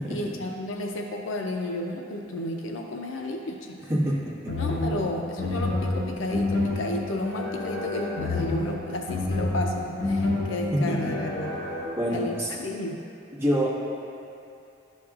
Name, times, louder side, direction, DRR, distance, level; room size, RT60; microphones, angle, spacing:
voice 1, 0.0-3.8 4.6-11.5 12.1-13.0, left 1 dB, 80° left, 2 dB, 0.5 m, -32 dB
voice 2, 3.8-4.6 10.7-11.2 12.0-12.6 13.4-13.7, equal, 10° right, -10 dB, 1.6 m, -26 dB
sound 1, 4.5-11.8, left 2 dB, 55° left, 1.2 m, -29 dB
11.0 x 6.2 x 2.4 m, 2.7 s
head